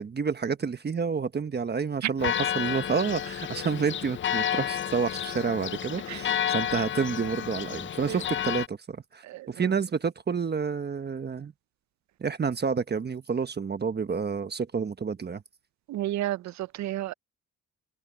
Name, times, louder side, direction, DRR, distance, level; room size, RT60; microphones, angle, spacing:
voice 1, 0.0-11.5 12.2-15.4, right 5 dB, 35° right, 1.3 m, -29 dB
Church bell, 2.2-8.7, left 10 dB, 40° left, 0.6 m, -31 dB
voice 2, 9.2-9.7 15.9-17.1, right 14 dB, 65° right, 0.6 m, -32 dB
cardioid pair, 90°, 30 cm